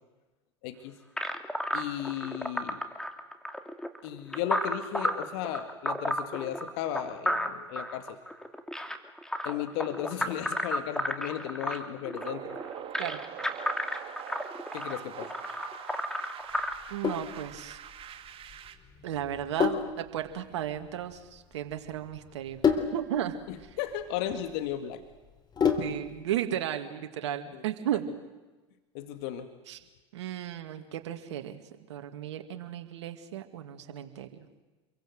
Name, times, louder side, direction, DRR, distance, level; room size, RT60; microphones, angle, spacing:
voice 1, 0.6-1.0 1.7-2.8 4.0-8.2 9.4-12.6 14.7-15.3 23.5-25.0 27.5-27.6 28.9-29.5, left 11 dB, 60° left, 9 dB, 2.2 m, -35 dB
sound 1, 1.2-16.7, equal, 5° left, 2.7 m, -33 dB
sound 2, 12.2-18.7, right 9 dB, 40° right, 2.6 m, -43 dB
Sink (filling or washing), 16.7-26.2, left 6 dB, 30° left, 3.7 m, -32 dB
voice 2, 16.9-17.8 19.0-22.6 22.9-23.4 25.8-28.1 29.7-29.8 30.1-31.6 31.9-34.3, right 11 dB, 70° right, 6 dB, 2.4 m, -34 dB
28.0 x 23.5 x 8.0 m, 1.2 s
hypercardioid pair, 90°, 15 cm